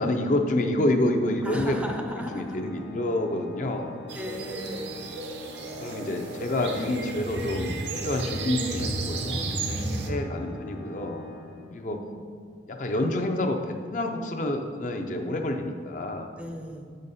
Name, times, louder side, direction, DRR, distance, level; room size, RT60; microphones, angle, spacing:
voice 1, 0.0-1.8 2.3-4.0 5.8-7.8 8.0-9.5 10.1-11.2 11.7-12.0 12.7-16.3, left 1 dB, 45° left, 4 dB, 0.5 m, -28 dB
Organ, 1.3-12.1, left 4 dB, 80° left, 0.8 m, -44 dB
voice 2, 1.4-2.6 4.1-5.0 9.4-10.3 11.5-12.3 16.4-16.9, equal, 10° right, 2 dB, 0.5 m, -37 dB
sound 1, 4.1-10.1, right 3 dB, 90° right, 0.8 m, -33 dB
7.8 x 5.1 x 4.1 m, 2.1 s
head